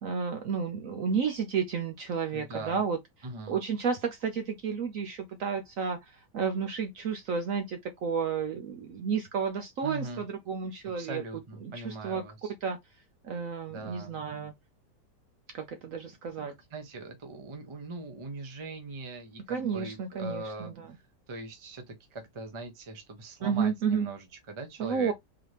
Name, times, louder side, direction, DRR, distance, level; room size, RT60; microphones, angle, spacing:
voice 1, 0.0-3.0 3.5-11.2 11.6-12.2 12.6-12.8 13.2-14.5 15.5-16.5 19.5-20.9 23.4-24.1 24.8-25.1, right 6 dB, 65° right, 0.9 m, -31 dB
voice 2, 2.3-2.8 3.2-3.6 9.8-10.3 11.0-12.5 13.7-14.1 16.4-20.7 21.3-25.1, right 3 dB, 25° right, 0.6 m, -41 dB
4.0 x 2.8 x 3.1 m
omnidirectional pair, 1.8 m